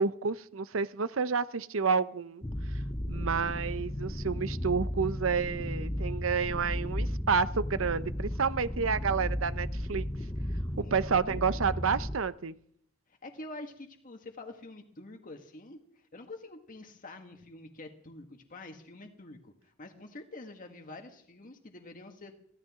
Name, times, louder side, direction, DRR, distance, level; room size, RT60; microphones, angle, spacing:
voice 1, 0.0-2.4 3.1-10.1 10.9-12.5, right 5 dB, 90° right, 15 dB, 0.7 m, -30 dB
sound 1, 2.4-12.2, equal, 15° left, 0.6 m, -34 dB
voice 2, 10.8-11.7 13.1-22.3, left 2 dB, 45° left, 4 dB, 1.7 m, -47 dB
23.0 x 15.5 x 3.7 m, 0.67 s
head